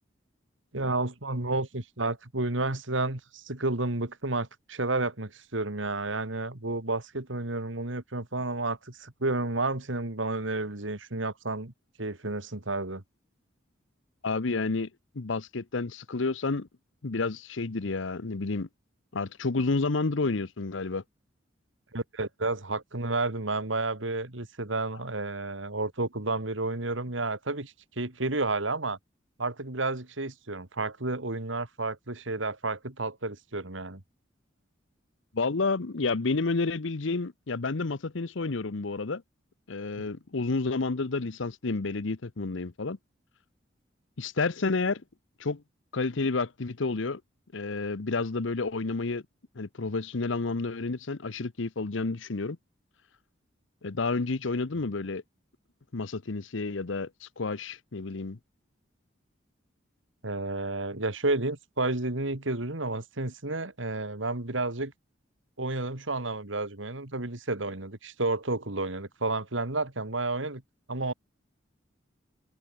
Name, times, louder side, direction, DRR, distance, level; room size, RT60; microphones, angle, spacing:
voice 1, 0.7-11.7 12.0-13.0 21.9-29.0 29.4-34.0 60.2-64.9 65.6-70.6 70.9-71.1, right 2 dB, 75° right, 2.6 m, -31 dB
voice 2, 14.2-14.9 15.1-16.7 17.0-18.7 19.1-21.0 35.3-39.2 39.7-43.0 44.2-45.0 45.4-45.6 45.9-47.2 47.5-49.2 49.6-52.6 53.8-55.2 55.9-58.4, left 3 dB, 75° left, 0.8 m, -30 dB
head